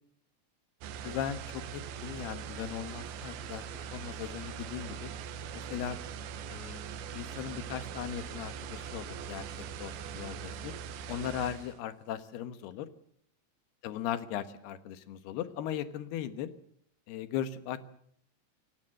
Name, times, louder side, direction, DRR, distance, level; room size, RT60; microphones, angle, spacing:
sound 1, 0.8-11.8, right 7 dB, 70° right, 2.8 m, -41 dB
voice 1, 1.0-5.1 5.5-6.0 6.5-6.8 7.1-9.5 9.8-10.7 11.1-12.9 13.8-16.5 17.1-17.8, left 10 dB, 70° left, 11 dB, 3.0 m, -38 dB
sound 2, 2.5-7.7, right 3 dB, 40° right, 4.2 m, -65 dB
28.5 x 16.5 x 7.7 m, 0.66 s
omnidirectional pair, 5.2 m